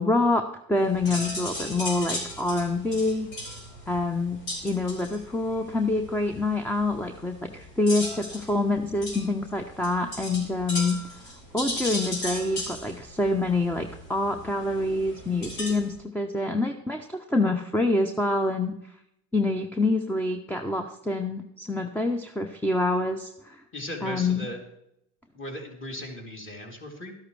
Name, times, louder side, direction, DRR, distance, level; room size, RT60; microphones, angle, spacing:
voice 1, 0.0-3.3 3.9-4.4 4.6-11.0 11.5-18.8 19.3-23.6 24.0-24.5, left 2 dB, 5° left, 6 dB, 0.7 m, -26 dB
sound 1, 0.8-15.9, left 1 dB, 70° left, 5.3 m, -37 dB
voice 2, 23.7-24.6 25.3-27.2, equal, 25° left, 0 dB, 3.0 m, -37 dB
12.5 x 11.5 x 3.3 m, 0.79 s
hypercardioid pair, 80°, 47 cm